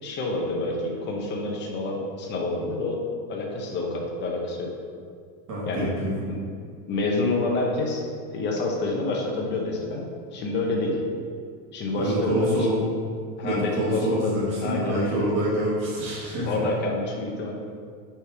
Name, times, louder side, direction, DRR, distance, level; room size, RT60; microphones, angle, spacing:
voice 1, 0.0-3.0 3.3-4.7 5.7-5.9 6.3-6.4 6.9-8.0 8.3-10.0 10.3-11.0 11.7-12.6 13.4-14.3 14.6-15.1 16.4-17.5, left 2 dB, 30° left, -1 dB, 0.8 m, -28 dB
voice 2, 5.5-6.2 12.0-12.8 13.4-16.7, right 1 dB, 30° right, -9 dB, 1.4 m, -26 dB
5.2 x 4.3 x 4.7 m, 2.2 s
cardioid pair, 170°, 38 cm